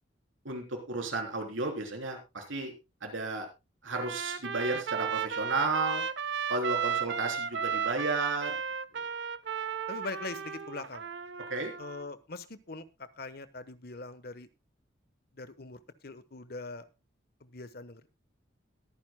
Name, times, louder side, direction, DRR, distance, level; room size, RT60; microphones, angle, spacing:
voice 1, 0.5-2.7 3.0-3.5 3.8-6.0 6.5-8.6 11.5-11.7, right 3 dB, 85° right, 3 dB, 3.6 m, -33 dB
Trumpet, 3.9-12.1, right 7 dB, 60° right, 0.7 m, -34 dB
voice 2, 9.9-11.1 11.8-14.5 15.4-16.9 17.4-18.1, left 3 dB, 50° left, 13 dB, 1.1 m, -42 dB
22.0 x 9.6 x 2.2 m, 0.24 s
head